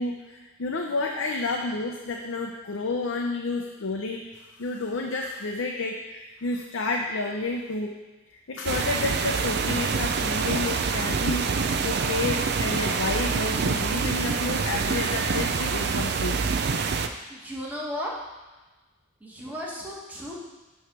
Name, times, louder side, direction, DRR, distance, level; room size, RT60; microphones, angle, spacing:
voice 1, 0.0-7.9 8.5-16.4, left 3 dB, 85° left, 1 dB, 0.6 m, -30 dB
sound 1, 8.7-17.1, right 5 dB, 55° right, 0.5 m, -26 dB
voice 2, 17.3-18.1 19.2-20.3, equal, 10° right, -5 dB, 1.3 m, -35 dB
9.0 x 3.2 x 6.0 m, 1.2 s
head